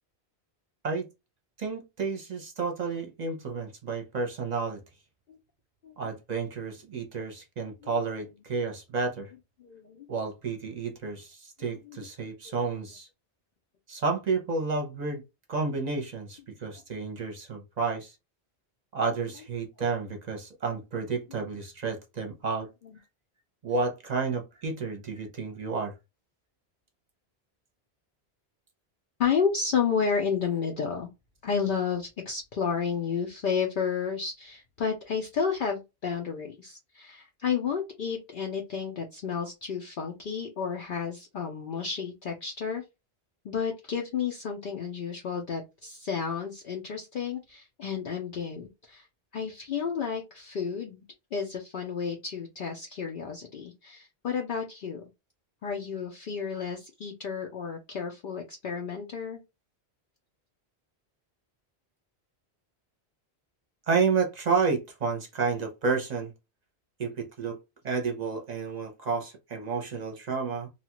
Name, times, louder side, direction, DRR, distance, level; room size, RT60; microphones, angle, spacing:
voice 1, 1.6-4.8 6.0-9.3 10.1-13.1 13.9-15.2 15.5-18.1 18.9-22.7 23.6-25.9 63.9-66.3 67.0-67.6 67.8-70.7, right 4 dB, 45° right, 0.7 m, -31 dB
voice 2, 9.6-10.1 11.9-12.1 12.5-12.6 29.2-31.1 31.4-42.8 43.4-49.1 49.3-51.0 51.3-55.0 55.6-59.4, left 6 dB, 60° left, 0.6 m, -31 dB
2.8 x 2.3 x 2.9 m
omnidirectional pair, 1.1 m